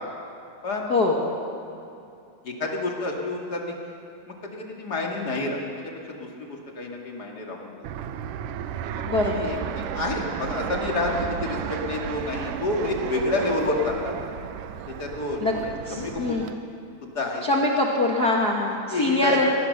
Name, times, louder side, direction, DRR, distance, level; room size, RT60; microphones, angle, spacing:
voice 1, 2.4-4.0 4.3-7.7 9.2-14.3 14.9-16.4 17.0-17.4 18.9-19.5, left 2 dB, 30° left, 0 dB, 2.1 m, -29 dB
Fixed-wing aircraft airplane, 7.8-16.5, right 9 dB, 75° right, 2.0 m, -33 dB
voice 2, 9.1-9.5 15.4-15.5 15.9-16.4 17.5-19.5, left 2 dB, 50° left, -2 dB, 1.1 m, -23 dB
23.0 x 19.0 x 6.7 m, 2.7 s
omnidirectional pair, 4.5 m